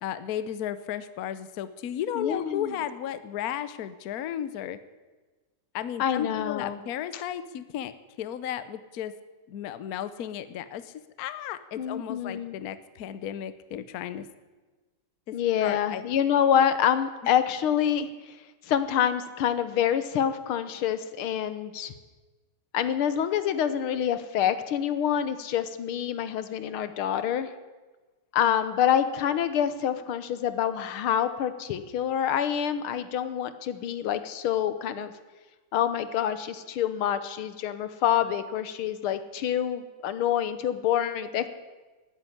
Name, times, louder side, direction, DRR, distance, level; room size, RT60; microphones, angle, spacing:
voice 1, 0.0-4.8 5.7-7.9 8.2-9.1 9.5-14.3 15.3-16.0, left 10 dB, 60° left, 13 dB, 1.0 m, -34 dB
voice 2, 2.2-2.8 6.0-6.8 7.1-7.2 11.8-12.6 15.3-18.4 18.7-21.9 22.7-27.5 28.3-35.1 35.7-41.5, left 9 dB, 85° left, 12 dB, 1.8 m, -27 dB
13.0 x 9.8 x 9.9 m, 1.3 s
omnidirectional pair, 2.3 m